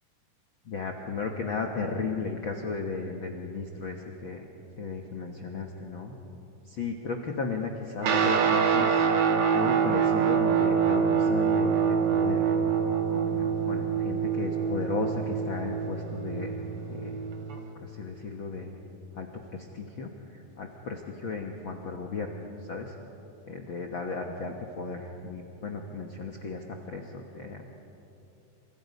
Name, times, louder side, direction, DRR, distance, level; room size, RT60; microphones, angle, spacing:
voice 1, 0.6-4.5 4.8-6.2 6.6-9.1 9.5-12.5 13.1-16.6 16.9-17.2 17.7-18.7 19.1-22.4 22.7-23.0 23.5-27.6, left 4 dB, 50° left, 2 dB, 1.5 m, -35 dB
Guitar, 8.0-17.7, right 7 dB, 50° right, 2.0 m, -25 dB
29.5 x 26.5 x 5.4 m, 2.8 s
omnidirectional pair, 3.9 m